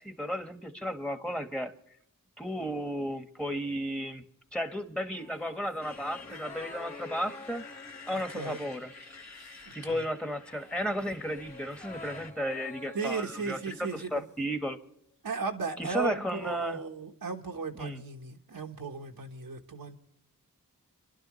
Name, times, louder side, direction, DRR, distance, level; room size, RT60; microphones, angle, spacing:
voice 1, 0.0-1.7 2.4-4.2 4.5-7.6 8.1-8.9 9.7-14.8 15.8-16.8 17.7-18.0, equal, 5° left, 7 dB, 1.5 m, -34 dB
sound 1, 5.1-9.9 10.2-14.5 14.8-14.9, left 3 dB, 20° left, 2.0 m, -51 dB
Motorcycle, 5.8-12.3, left 4 dB, 50° left, 2.2 m, -48 dB
voice 2, 8.1-8.6 9.7-10.0 12.9-14.1 15.2-20.0, right 5 dB, 80° right, 2 dB, 1.3 m, -36 dB
26.5 x 11.5 x 3.2 m, 0.75 s
cardioid pair, 45°, 34 cm